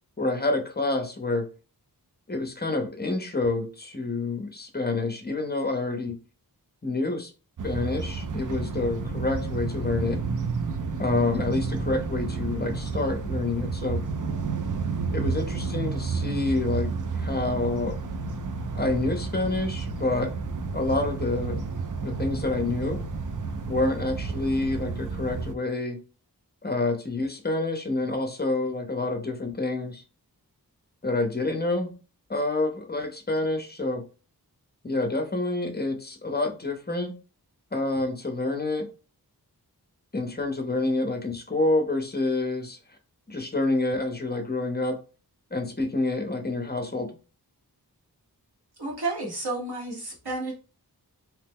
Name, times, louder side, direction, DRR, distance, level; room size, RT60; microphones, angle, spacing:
voice 1, 0.2-1.5 2.3-6.2 6.8-7.3 7.6-10.2 11.0-14.0 15.1-17.9 18.7-20.3 20.7-21.6 22.0-23.0 23.7-26.0 26.6-30.0 31.0-31.9 32.3-34.0 34.8-37.1 37.7-38.9 40.1-42.8 43.3-45.0 45.5-47.2, left 2 dB, 25° left, 0.6 m, -28 dB
sound 1, 7.6-25.5, right 4 dB, 55° right, 0.5 m, -31 dB
voice 2, 48.8-50.5, right 2 dB, 75° right, 1.4 m, -31 dB
2.9 x 2.0 x 3.5 m
wide cardioid pair, 50°, 38 cm